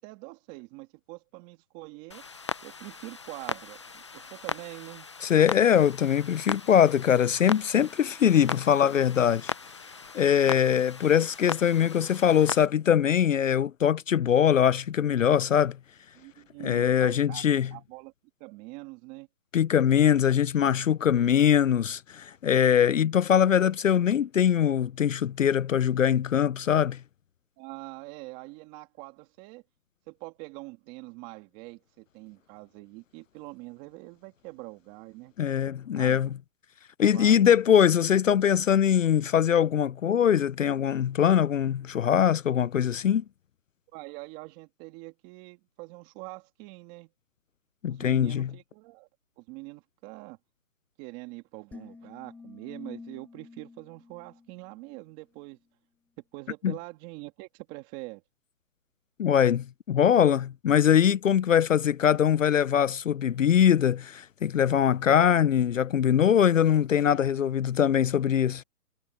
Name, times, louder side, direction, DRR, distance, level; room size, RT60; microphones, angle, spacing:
voice 1, 0.0-2.3 2.6-5.1 16.1-17.4 17.7-18.1 18.4-19.3 27.6-29.6 30.1-35.3 35.9-36.3 37.1-37.4 43.9-47.1 47.9-49.1 49.4-50.4 51.0-55.6 56.3-58.2 67.2-67.4, right 23 dB, 15° right, 2.3 m, -44 dB
Clock, 2.1-12.7, left 4 dB, 20° left, 0.6 m, -38 dB
voice 2, 5.2-9.5 10.1-15.8 16.6-17.7 19.5-27.0 35.4-36.3 37.0-43.2 47.8-48.5 56.6-56.7 59.2-68.6, left 9 dB, 60° left, 0.7 m, -22 dB
sound 1, 51.7-55.1, left 4 dB, 5° left, 1.8 m, -48 dB
hypercardioid pair, 160°, 44 cm